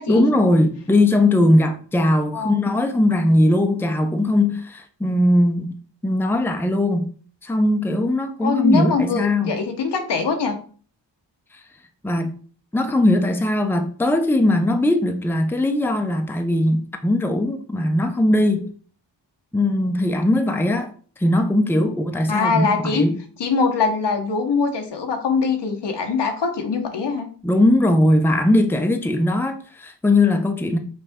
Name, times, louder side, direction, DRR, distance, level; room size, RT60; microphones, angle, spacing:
voice 1, 0.1-5.7 6.0-7.1 7.4-9.5 12.0-12.4 12.7-18.7 19.5-23.2 27.4-30.8, left 1 dB, 5° left, 0.6 m, -19 dB
voice 2, 8.4-10.6 22.3-23.1 23.4-27.3, left 4 dB, 70° left, 1.0 m, -22 dB
5.4 x 2.6 x 3.5 m
cardioid pair, 60°, 43 cm